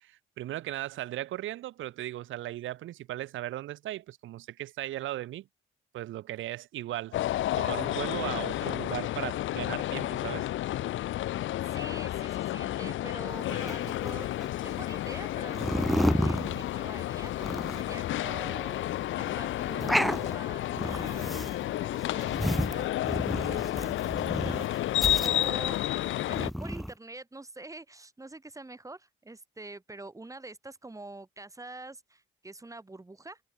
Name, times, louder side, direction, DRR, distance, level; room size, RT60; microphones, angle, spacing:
voice 1, 0.0-5.5 5.9-7.2 7.6-10.5, right 14 dB, 80° right, 1.3 m, -37 dB
sound 1, 7.1-26.5, left 14 dB, 80° left, 1.1 m, -31 dB
voice 2, 11.6-18.8 19.1-25.8 26.3-33.4, right 2 dB, 15° right, 3.7 m, -45 dB
sound 2, 13.6-14.5 15.5-17.0 17.3-18.0 18.4-18.5 18.7-18.8 19.3-19.4 19.6-20.3 20.7-21.6 21.9-24.7 25.0-25.8 26.2-26.9, equal, ahead, 0.4 m, -31 dB
cardioid pair, 90°, 20 cm